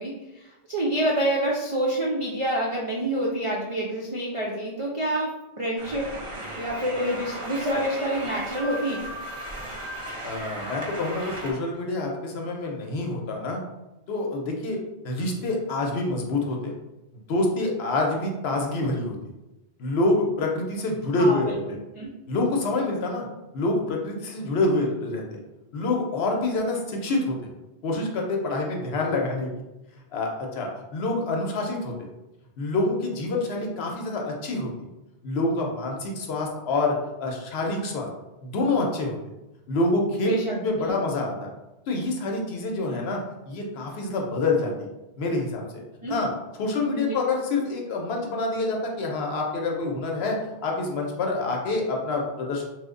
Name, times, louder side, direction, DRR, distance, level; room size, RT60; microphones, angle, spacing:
voice 1, 0.0-5.3 5.6-6.1 6.6-9.0 21.1-22.1 40.2-40.9 42.9-43.0 46.0-46.2 47.0-47.1, right 1 dB, 55° right, -4 dB, 0.3 m, -27 dB
sound 1, 5.8-11.5, right 1 dB, 35° right, 0.7 m, -36 dB
voice 2, 10.2-13.6 14.1-14.8 15.0-16.7 17.3-19.2 19.8-21.6 22.3-23.3 23.5-25.4 25.7-27.4 27.8-29.5 30.1-31.9 32.6-34.7 35.2-38.1 38.4-39.2 39.7-41.5 41.9-43.2 43.5-44.9 45.2-45.6 46.1-46.3 46.6-50.4 50.6-52.6, left 2 dB, 70° left, 0 dB, 0.8 m, -26 dB
3.0 x 2.1 x 3.6 m, 0.99 s
omnidirectional pair, 1.1 m